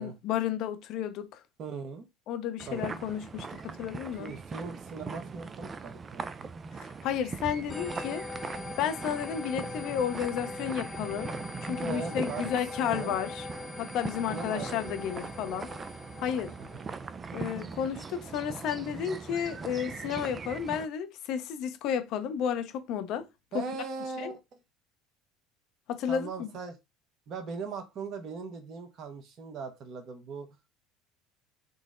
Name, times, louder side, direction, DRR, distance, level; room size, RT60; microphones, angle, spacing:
voice 1, 0.0-1.4 2.3-4.3 6.8-8.3 8.8-11.3 11.6-13.5 13.8-15.7 16.2-16.5 17.3-23.3 23.5-23.7 24.2-24.3 25.9-26.5, left 9 dB, 60° left, 0.6 m, -32 dB
voice 2, 1.6-2.1 2.7-3.0 4.2-6.5 11.8-12.5 12.8-13.2 14.3-15.1 16.6-16.9 23.5-24.4 26.1-26.8 27.3-30.5, right 5 dB, 50° right, 1.0 m, -39 dB
sound 1, 2.6-20.9, right 4 dB, 30° right, 0.3 m, -40 dB
sound 2, 7.7-17.1, left 3 dB, 15° left, 0.6 m, -42 dB
3.8 x 2.0 x 3.7 m
supercardioid pair, 90°, 0 cm